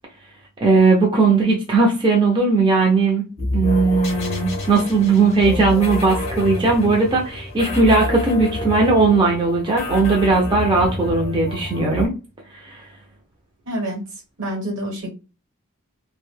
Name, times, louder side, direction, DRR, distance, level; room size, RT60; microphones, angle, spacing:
voice 1, 0.6-3.2 3.5-12.1 12.5-12.8, right 3 dB, 25° right, -1 dB, 0.5 m, -18 dB
sound 1, 3.4-12.1, left 1 dB, 30° left, 0.7 m, -28 dB
voice 2, 13.6-14.0 14.4-15.1, right 1 dB, 65° right, 0 dB, 1.1 m, -27 dB
2.6 x 2.1 x 3.1 m, 0.31 s
head